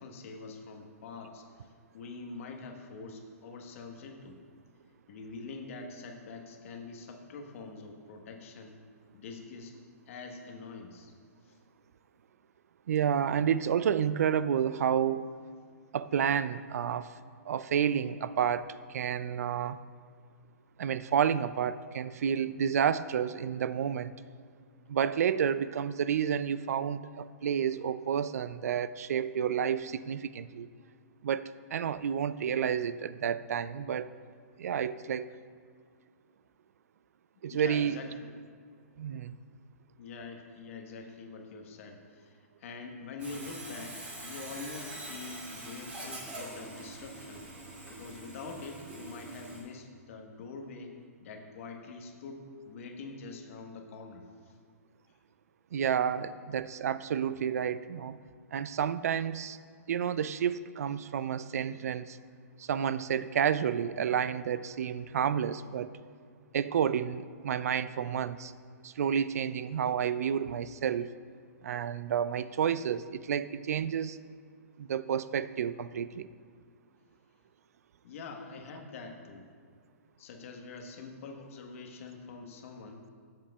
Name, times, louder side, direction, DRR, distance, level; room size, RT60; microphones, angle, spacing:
voice 1, 0.0-4.4 5.1-8.8 9.1-9.8 10.1-11.1 11.5-11.6 37.5-38.3 40.0-47.5 47.9-54.5 78.0-79.5 80.2-83.1, left 4 dB, 55° left, 3 dB, 1.2 m, -45 dB
voice 2, 12.9-15.2 15.9-17.1 17.5-19.8 20.8-24.1 24.9-30.7 31.2-34.1 34.6-35.3 37.4-37.9 39.0-39.4 55.7-58.2 58.5-59.6 59.9-62.2 62.6-65.9 66.5-68.5 68.8-71.1 71.6-74.2 74.8-76.3, right 8 dB, 70° right, 15 dB, 0.3 m, -30 dB
Sawing, 43.2-49.6, right 1 dB, 15° right, 2.2 m, -44 dB
13.5 x 7.3 x 2.3 m, 2.1 s
hypercardioid pair, 135°, 9 cm